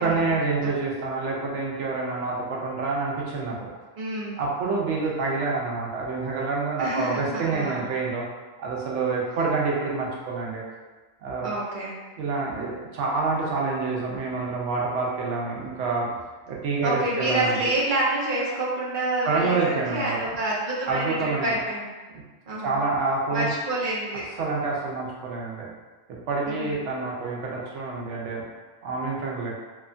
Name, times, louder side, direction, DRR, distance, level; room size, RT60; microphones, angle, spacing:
voice 1, 0.0-3.6 4.4-8.2 8.6-10.6 11.2-11.5 12.2-16.1 16.5-17.7 19.2-20.3 20.9-21.5 22.6-23.5 24.4-25.7 26.3-28.4 28.8-29.6, right 3 dB, 85° right, -3 dB, 0.9 m, -27 dB
voice 2, 4.0-4.4 6.8-7.9 11.4-11.9 16.8-21.9 22.5-22.7 23.3-24.2 26.5-26.9, right 1 dB, 60° right, -6 dB, 0.5 m, -28 dB
2.8 x 2.1 x 2.5 m, 1.3 s
omnidirectional pair, 1.2 m